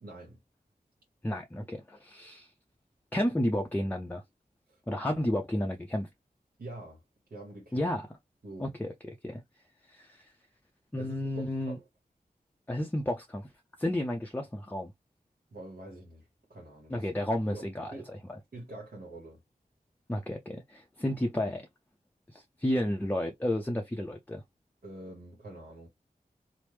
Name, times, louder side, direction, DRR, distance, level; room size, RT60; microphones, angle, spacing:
voice 1, 0.0-0.4 4.7-4.8 6.6-7.0 7.3-7.9 8.4-8.7 11.0-11.8 15.5-17.1 17.4-18.1 18.5-19.4 24.8-25.9, right 2 dB, 75° right, 1.1 m, -45 dB
voice 2, 1.2-2.5 3.1-4.2 4.9-6.1 7.7-8.0 8.6-8.9 9.2-9.4 9.9-10.3 10.9-11.8 12.7-13.5 13.8-14.9 16.9-17.9 20.1-21.7 22.3-24.4, left 1 dB, 10° left, 0.5 m, -31 dB
3.0 x 2.0 x 3.3 m
wide cardioid pair, 50°, 16 cm